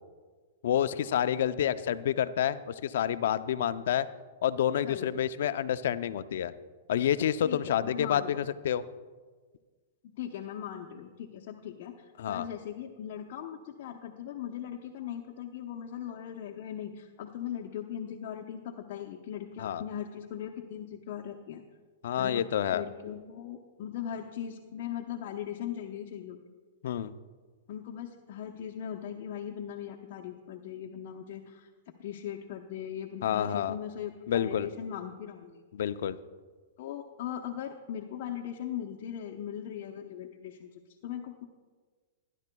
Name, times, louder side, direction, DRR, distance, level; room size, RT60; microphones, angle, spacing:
voice 1, 0.6-4.1 4.4-6.5 6.9-8.8 12.2-12.5 19.6-19.8 22.0-22.8 26.8-27.1 33.2-33.8 34.3-34.7 35.7-36.2, left 10 dB, 70° left, 13 dB, 0.5 m, -28 dB
voice 2, 7.4-8.3 10.0-21.6 22.2-22.4 22.7-26.4 27.7-31.7 32.0-35.6 36.8-41.4, left 9 dB, 55° left, 1 dB, 0.9 m, -39 dB
20.0 x 11.0 x 2.3 m, 1.4 s
hypercardioid pair, 130°, 0 cm